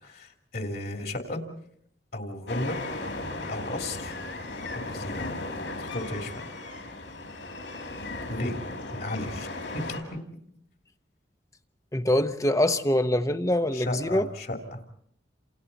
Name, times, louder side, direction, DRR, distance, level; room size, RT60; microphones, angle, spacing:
voice 1, 0.0-1.4 2.1-2.8 3.5-4.2 4.7-5.3 5.8-6.5 8.3-8.6 8.9-9.5 9.7-10.2 13.7-14.9, left 1 dB, 50° left, 3.2 m, -34 dB
sound 1, 2.5-10.0, left 2 dB, 75° left, 5.7 m, -36 dB
voice 2, 11.9-14.3, left 1 dB, 15° left, 0.9 m, -24 dB
29.0 x 28.0 x 4.2 m
head